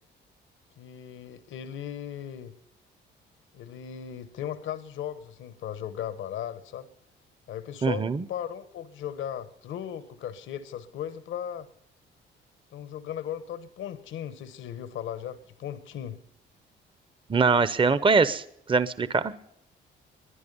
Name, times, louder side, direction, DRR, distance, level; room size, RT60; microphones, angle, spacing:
voice 1, 0.8-2.5 3.5-6.9 7.5-11.7 12.7-16.2, left 9 dB, 80° left, 1.2 m, -37 dB
voice 2, 7.8-8.2 17.3-18.4 18.7-19.3, right 4 dB, 25° right, 0.8 m, -22 dB
22.5 x 10.5 x 5.4 m
cardioid pair, 90°, 20 cm